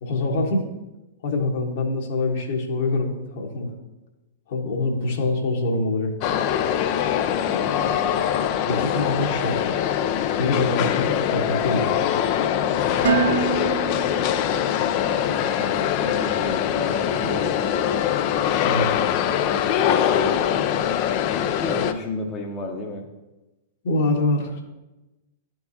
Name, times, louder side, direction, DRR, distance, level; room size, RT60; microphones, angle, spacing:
voice 1, 0.0-0.7 1.2-3.7 4.5-6.1 8.7-9.7 10.4-12.1 18.6-19.2 23.8-24.6, left 2 dB, 60° left, 0 dB, 1.5 m, -25 dB
sound 1, 6.2-21.9, left 9 dB, 45° left, 0.5 m, -23 dB
voice 2, 7.4-8.2 15.2-17.8 20.1-20.8 21.6-23.1, left 2 dB, 20° left, 0 dB, 0.8 m, -33 dB
Dishes pots and pans, 13.0-15.1, right 7 dB, 65° right, 0.6 m, -26 dB
12.0 x 4.6 x 2.8 m, 1.1 s
figure-of-eight pair, 105°, 0 cm